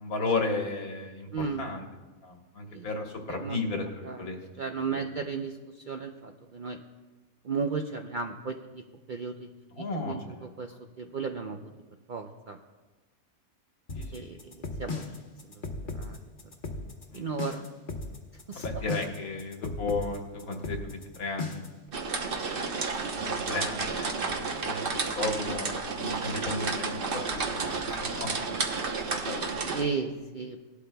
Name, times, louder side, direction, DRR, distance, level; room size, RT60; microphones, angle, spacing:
voice 1, 0.0-1.8 2.2-4.4 4.9-5.0 9.8-10.4 13.9-14.4 17.1-17.3 18.6-21.6 23.2-28.3 29.1-29.5, left 3 dB, 80° left, 2 dB, 1.8 m, -34 dB
voice 2, 1.3-1.6 2.7-2.9 3.3-3.6 4.0-4.3 4.6-6.8 7.4-9.5 9.8-11.7 12.1-12.6 14.1-15.1 15.5-15.6 15.9-16.2 17.1-17.6 18.3-18.8 21.9-22.0 29.6-30.6, right 5 dB, 60° right, 4 dB, 0.5 m, -35 dB
sound 1, 13.9-21.8, left 3 dB, 40° left, 1.1 m, -36 dB
sound 2, 21.9-29.8, right 4 dB, 45° right, 1.0 m, -31 dB
18.0 x 11.5 x 2.2 m, 1.2 s
omnidirectional pair, 1.5 m